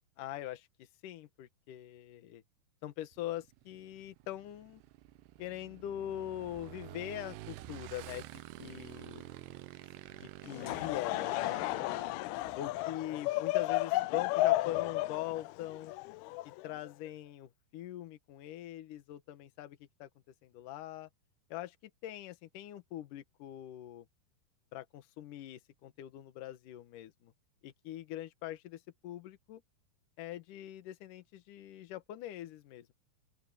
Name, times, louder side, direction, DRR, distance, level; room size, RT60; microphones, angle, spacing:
voice 1, 0.2-2.4 2.8-4.8 5.4-9.3 10.1-11.6 11.8-12.2 12.5-15.9 16.4-20.1 20.4-21.1 21.5-24.1 24.7-27.3 27.6-29.6 30.2-32.9, left 13 dB, 65° left, 2.5 m, -43 dB
Motorcycle / Engine, 3.1-12.8, right 16 dB, 85° right, 3.0 m, -50 dB
Laughter / Crowd, 10.5-16.9, left 17 dB, 80° left, 2.5 m, -33 dB
open air
omnidirectional pair, 4.7 m